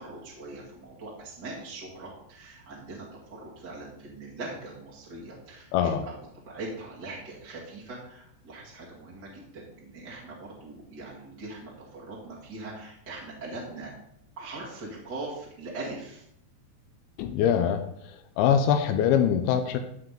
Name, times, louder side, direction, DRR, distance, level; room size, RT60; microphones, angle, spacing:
voice 1, 0.0-3.0 3.3-5.7 6.0-6.1 6.4-13.9 14.4-16.2, right 2 dB, 35° right, -6 dB, 1.8 m, -41 dB
voice 2, 5.7-6.0 17.2-17.8 18.4-19.9, left 8 dB, 85° left, 8 dB, 2.2 m, -23 dB
14.5 x 5.0 x 3.8 m, 0.73 s
omnidirectional pair, 5.1 m